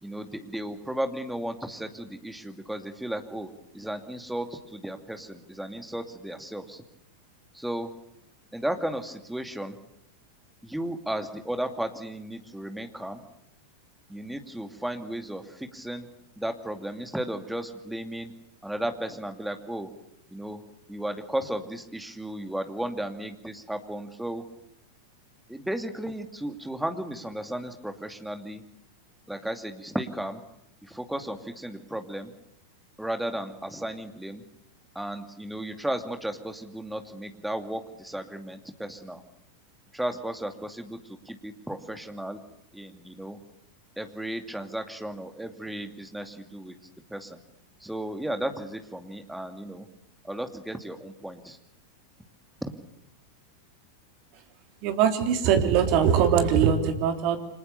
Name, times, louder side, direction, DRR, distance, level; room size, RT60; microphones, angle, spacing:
voice 1, 0.0-3.5 3.7-6.8 7.5-7.9 8.5-9.8 10.6-13.2 14.1-16.1 16.4-18.3 18.6-19.9 20.3-20.6 20.9-24.4 25.5-28.6 29.3-30.4 30.8-32.3 33.0-34.4 34.9-39.2 39.9-42.4 42.7-43.4 44.0-46.8 47.1-47.4 47.8-49.9 50.2-51.6 52.6-52.7, right 1 dB, 5° right, 7 dB, 2.5 m, -34 dB
voice 2, 54.8-57.4, right 8 dB, 45° right, 6 dB, 3.4 m, -22 dB
29.5 x 25.5 x 6.9 m, 0.81 s
figure-of-eight pair, 90°, 0 cm